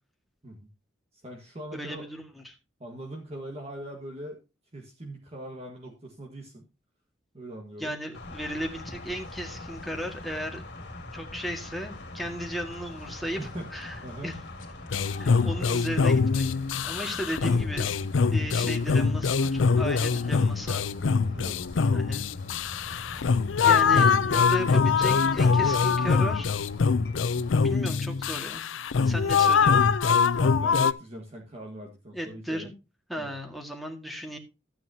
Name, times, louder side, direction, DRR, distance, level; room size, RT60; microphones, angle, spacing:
voice 1, 1.1-2.1 2.8-4.4 4.7-6.7 7.3-7.9 13.4-13.7 14.0-14.3 21.3-21.9 23.6-24.1 30.4-32.7 33.1-33.3, right 1 dB, 35° right, 1 dB, 1.6 m, -41 dB
voice 2, 1.7-2.5 7.8-10.7 11.1-14.3 15.2-16.5 16.8-18.0 18.3-20.9 21.9-22.3 22.9-23.1 23.6-26.5 27.6-28.6 29.0-29.8 32.1-32.7 33.1-34.4, equal, ahead, 2 dB, 1.8 m, -35 dB
sound 1, 8.1-27.5, left 1 dB, 60° left, 2.2 m, -43 dB
sound 2, 8.7-8.8 9.0-21.7, left 3 dB, 45° left, 2.4 m, -53 dB
sound 3, 14.9-30.9, left 5 dB, 90° left, 0.5 m, -23 dB
12.5 x 9.1 x 2.8 m, 0.27 s
head